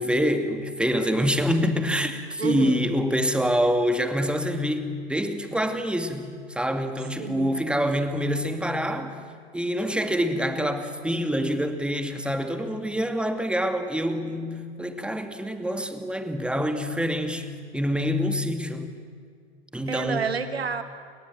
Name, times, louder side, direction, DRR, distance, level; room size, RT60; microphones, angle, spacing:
voice 1, 0.0-9.2 9.5-18.9 19.7-20.3, equal, 5° right, 2.4 m, -26 dB
voice 2, 2.4-2.8 7.2-7.6 19.9-20.8, right 6 dB, 80° right, 1.6 m, -29 dB
29.5 x 23.0 x 7.8 m
figure-of-eight pair, 75°, 31 cm